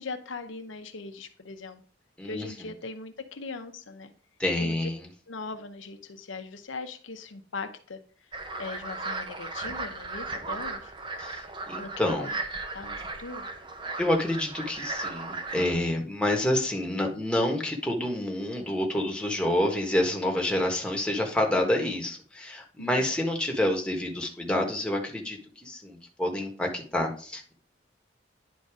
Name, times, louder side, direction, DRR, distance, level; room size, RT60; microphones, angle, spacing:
voice 1, 0.0-1.8 2.2-4.1 4.6-4.8 5.3-8.0 8.6-10.9 11.8-12.3 12.7-13.5 22.8-23.0, left 3 dB, 90° left, 7 dB, 0.9 m, -40 dB
voice 2, 2.2-2.7 4.4-5.1 11.2-12.3 14.0-27.5, left 1 dB, 5° left, 1 dB, 1.4 m, -28 dB
sound 1, 8.3-15.8, right 3 dB, 25° right, 0.9 m, -36 dB
10.5 x 4.1 x 4.9 m, 0.43 s
head